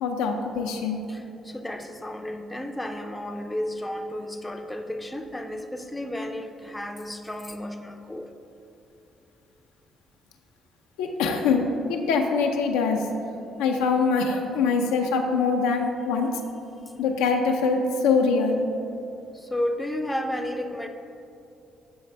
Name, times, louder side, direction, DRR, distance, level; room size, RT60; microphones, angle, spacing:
voice 1, 0.0-1.0 11.0-13.0 13.6-16.3 17.0-18.6, left 4 dB, 85° left, 3 dB, 0.5 m, -23 dB
voice 2, 1.1-8.3 19.3-20.9, left 1 dB, 10° left, 5 dB, 0.5 m, -32 dB
7.8 x 3.2 x 4.3 m, 2.7 s
supercardioid pair, 55°, 0 cm